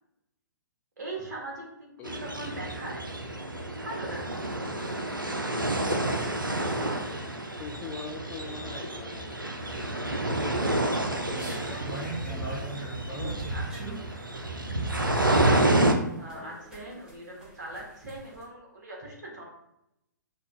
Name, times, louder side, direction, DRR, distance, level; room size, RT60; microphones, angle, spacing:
voice 1, 1.0-3.1 3.8-4.4 11.6-12.1 13.1-14.1 15.5-19.4, right 2 dB, 55° right, -2 dB, 1.4 m, -41 dB
sound 1, 2.0-15.9, right 1 dB, 90° right, 0.5 m, -29 dB
voice 2, 6.3-7.2 7.6-9.4 9.8-12.6 16.3-16.5, left 4 dB, 15° left, 0 dB, 0.3 m, -43 dB
sound 2, 11.3-18.4, right 3 dB, 5° right, 0.9 m, -41 dB
5.3 x 2.3 x 2.6 m, 0.84 s
figure-of-eight pair, 120°, 11 cm